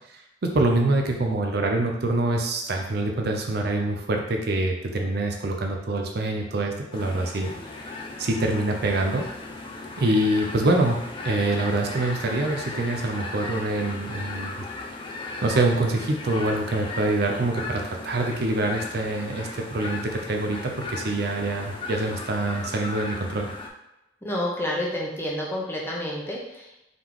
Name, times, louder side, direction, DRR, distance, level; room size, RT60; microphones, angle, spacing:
voice 1, 0.4-7.5 8.2-9.3 10.0-11.0 11.2-14.6 15.4-23.5, right 2 dB, 65° right, 2 dB, 0.6 m, -25 dB
sound 1, 6.9-23.7, left 3 dB, 30° left, 0.5 m, -37 dB
voice 2, 24.2-26.8, left 1 dB, 15° left, -3 dB, 0.8 m, -29 dB
3.9 x 3.0 x 3.5 m, 0.92 s
head